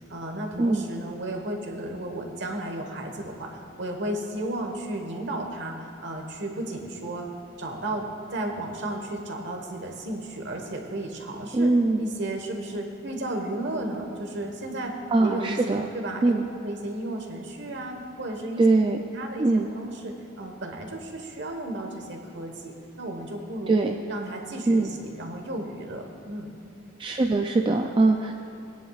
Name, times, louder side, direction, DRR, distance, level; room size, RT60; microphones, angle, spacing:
voice 1, 0.1-5.8 6.0-7.3 7.6-11.7 12.0-16.3 16.6-18.7 19.1-23.8 24.1-26.5, right 1 dB, 60° right, 3 dB, 1.3 m, -33 dB
voice 2, 11.5-12.0 15.1-15.9 16.2-16.4 18.6-19.0 19.4-19.7 23.7-24.0 24.7-24.9 27.0-28.4, right 2 dB, 25° right, 3 dB, 0.4 m, -22 dB
19.5 x 10.5 x 2.4 m, 3.0 s
head